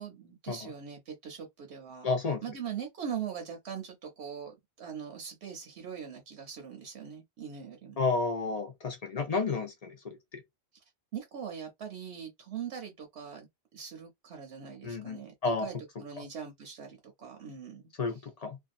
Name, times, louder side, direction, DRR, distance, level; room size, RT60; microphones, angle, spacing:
voice 1, 0.0-2.1 2.4-8.0 11.1-17.8, right 7 dB, 80° right, 1.0 m, -41 dB
voice 2, 2.0-2.4 8.0-10.4 14.8-15.7 16.2-16.3 18.0-18.6, left 4 dB, 45° left, 0.6 m, -31 dB
2.6 x 2.2 x 2.5 m
omnidirectional pair, 1.1 m